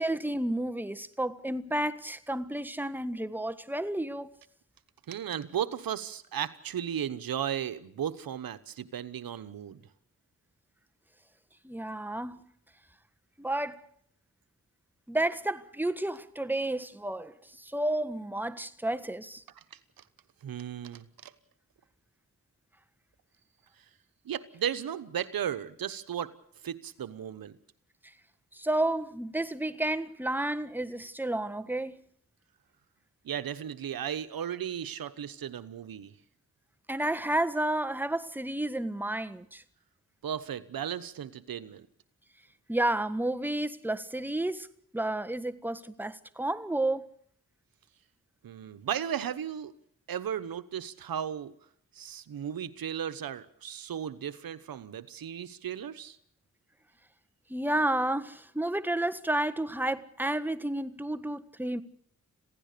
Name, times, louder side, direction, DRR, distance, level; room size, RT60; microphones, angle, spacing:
voice 1, 0.0-4.3 11.6-12.4 13.4-13.9 15.1-19.4 28.0-28.1 28.5-32.0 36.9-39.6 42.7-47.1 57.5-61.8, right 1 dB, 5° right, 1.5 m, -31 dB
voice 2, 5.1-9.8 19.7-19.8 20.4-21.3 24.2-26.3 26.6-27.6 33.2-36.1 40.2-41.9 48.4-49.7 50.1-51.5 51.9-56.2, right 9 dB, 90° right, 1.1 m, -35 dB
26.5 x 16.5 x 6.8 m
cardioid pair, 50°, 34 cm